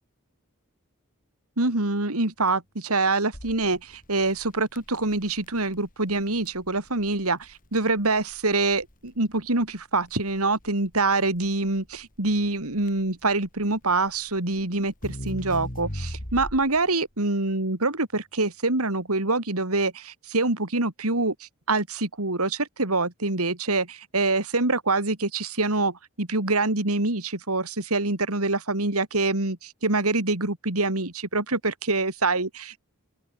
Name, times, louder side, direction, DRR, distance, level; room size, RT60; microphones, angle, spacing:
voice 1, 1.6-32.8, right 3 dB, 80° right, 3.4 m, -25 dB
Crackle, 3.3-16.9, equal, 40° left, 5.0 m, -40 dB
open air
head